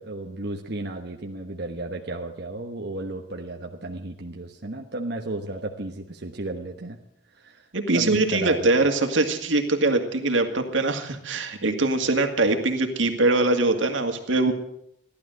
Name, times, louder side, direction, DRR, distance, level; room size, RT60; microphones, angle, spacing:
voice 1, 0.0-7.0 7.3-7.7 7.9-8.9 14.5-14.6, right 2 dB, 60° right, 2 dB, 1.2 m, -33 dB
voice 2, 7.7-14.5, right 2 dB, 90° right, 5 dB, 2.2 m, -22 dB
15.0 x 12.0 x 7.9 m, 0.74 s
head